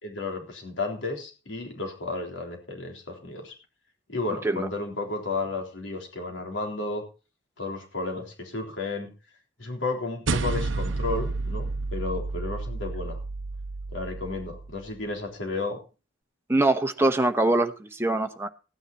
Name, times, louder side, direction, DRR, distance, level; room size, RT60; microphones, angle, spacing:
voice 1, 0.0-3.5 4.1-7.0 7.6-9.1 9.6-13.2 13.9-15.8, left 3 dB, 80° left, 3.7 m, -33 dB
sound 1, 10.3-14.9, right 3 dB, 80° right, 0.7 m, -31 dB
voice 2, 16.5-18.5, right 2 dB, 15° right, 1.0 m, -23 dB
15.5 x 9.8 x 4.2 m
head